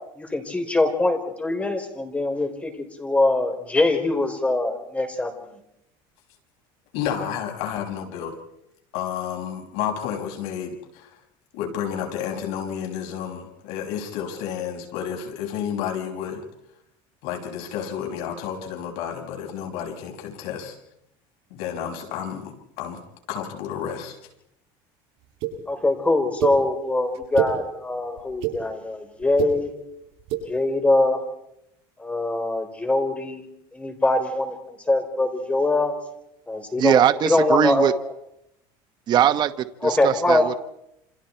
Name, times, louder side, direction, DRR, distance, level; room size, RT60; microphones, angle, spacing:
voice 1, 0.2-5.3 25.7-29.7 30.5-31.2 32.0-33.5 33.7-35.9 36.5-38.0 39.8-40.5, left 2 dB, 10° left, 7 dB, 4.0 m, -23 dB
voice 2, 6.9-8.4 8.9-11.2 11.5-16.4 17.2-20.8 21.5-23.0 23.3-24.2, left 8 dB, 70° left, 2 dB, 5.7 m, -31 dB
sound 1, 25.4-25.5 26.4-26.5 27.1-27.5 28.2-28.5 29.2-29.5 30.2-30.4, right 13 dB, 60° right, 7.8 m, -25 dB
voice 3, 36.8-37.9 39.1-39.5 39.8-40.6, right 10 dB, 40° right, 10 dB, 1.1 m, -20 dB
28.5 x 26.5 x 4.5 m, 0.80 s
cardioid pair, 140°, 11 cm